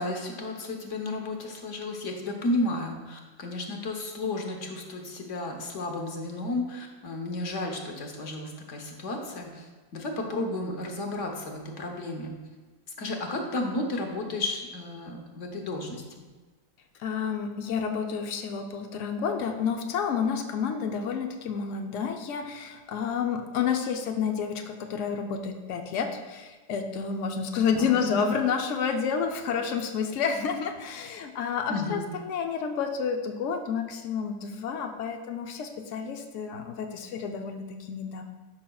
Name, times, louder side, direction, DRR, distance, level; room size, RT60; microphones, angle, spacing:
voice 1, 0.0-12.4 13.0-16.2 27.8-28.0 31.7-32.0, left 2 dB, 50° left, 2 dB, 1.1 m, -33 dB
voice 2, 17.0-38.2, left 6 dB, 90° left, 4 dB, 0.6 m, -30 dB
12.5 x 5.6 x 2.3 m, 1.3 s
omnidirectional pair, 2.0 m